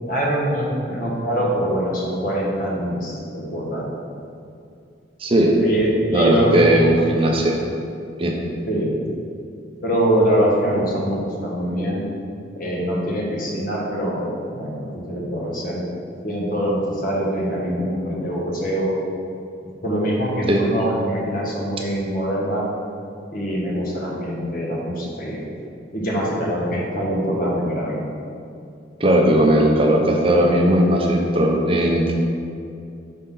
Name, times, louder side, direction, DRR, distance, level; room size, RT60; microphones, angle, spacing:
voice 1, 0.0-3.9 5.6-6.8 8.7-8.9 9.8-12.1 12.5-15.8 16.2-18.9 19.8-22.7 23.3-25.4 25.9-28.0, equal, 50° left, -4 dB, 1.4 m, -23 dB
voice 2, 5.2-5.6 6.1-7.6 8.2-8.3 20.5-20.6 29.0-32.1, right 1 dB, 30° right, 0 dB, 0.6 m, -17 dB
5.5 x 4.1 x 5.5 m, 2.5 s
head